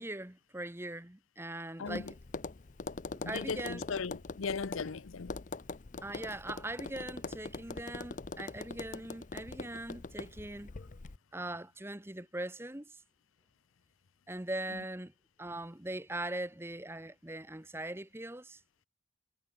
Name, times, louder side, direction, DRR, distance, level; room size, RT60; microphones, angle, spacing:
voice 1, 0.0-2.1 3.1-3.8 6.0-10.7 11.3-13.0 14.3-15.1 15.4-18.6, right 1 dB, 10° right, 1.0 m, -41 dB
voice 2, 1.8-2.1 3.2-5.4 10.8-10.9 14.7-14.8, left 5 dB, 75° left, 0.6 m, -38 dB
Tap, 1.9-11.2, left 3 dB, 40° left, 0.6 m, -43 dB
head